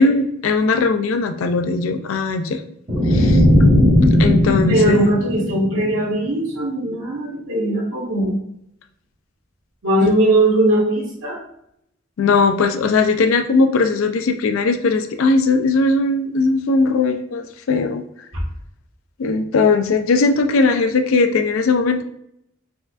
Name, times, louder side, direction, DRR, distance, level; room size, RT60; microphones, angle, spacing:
voice 1, 0.0-2.6 3.1-3.4 4.2-5.1 10.0-10.1 12.2-18.0 19.2-22.0, left 3 dB, 90° left, 7 dB, 0.4 m, -18 dB
sound 1, 2.9-6.1, left 1 dB, 35° right, 0.8 m, -16 dB
voice 2, 4.7-8.4 9.8-11.4 18.3-18.4, right 1 dB, 80° right, -4 dB, 1.0 m, -19 dB
4.2 x 2.5 x 2.3 m, 0.74 s
head